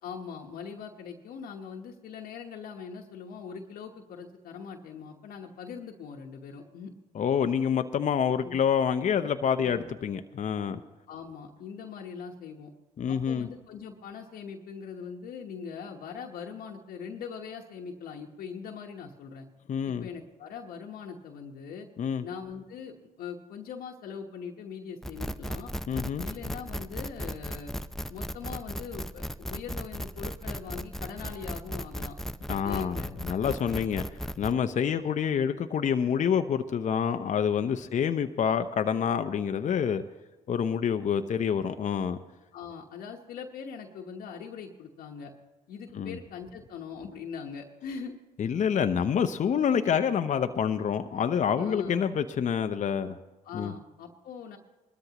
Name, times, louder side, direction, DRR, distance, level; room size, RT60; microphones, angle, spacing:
voice 1, 0.0-6.9 8.4-8.6 9.6-9.9 11.1-12.7 13.1-19.5 19.9-21.9 22.2-25.7 26.2-27.7 28.1-32.2 32.5-33.1 33.4-33.8 34.8-35.1 42.5-45.3 45.7-48.1 49.4-49.5 51.6-52.1 53.4-54.6, left 6 dB, 80° left, 0 dB, 1.2 m, -41 dB
voice 2, 7.1-10.8 13.0-13.5 19.7-20.1 22.0-22.2 25.9-26.3 32.5-34.0 34.4-40.0 40.5-42.2 46.0-46.2 48.4-53.2 53.5-53.7, left 7 dB, 55° left, 8 dB, 0.7 m, -27 dB
sound 1, 25.0-34.5, equal, ahead, 0.6 m, -36 dB
20.0 x 13.5 x 3.0 m, 1.2 s
supercardioid pair, 55°, 15 cm